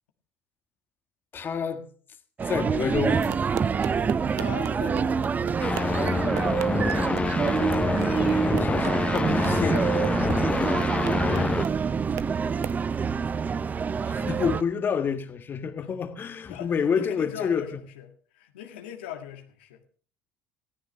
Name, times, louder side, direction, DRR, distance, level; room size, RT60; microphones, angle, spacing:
voice 1, 1.3-1.8 2.4-3.3 8.6-10.5 14.0-17.7, left 6 dB, 40° left, 1.6 m, -29 dB
sound 1, 2.4-14.6, right 6 dB, 30° right, 0.6 m, -26 dB
sound 2, 3.1-12.8, right 13 dB, 65° right, 0.8 m, -40 dB
voice 2, 3.9-5.4 11.3-11.6 15.8-15.9 16.5-18.1 18.3-19.8, left 10 dB, 85° left, 1.7 m, -40 dB
sound 3, 5.6-11.6, left 4 dB, 20° left, 0.6 m, -27 dB
20.0 x 14.0 x 3.4 m
hypercardioid pair, 70°, 5 cm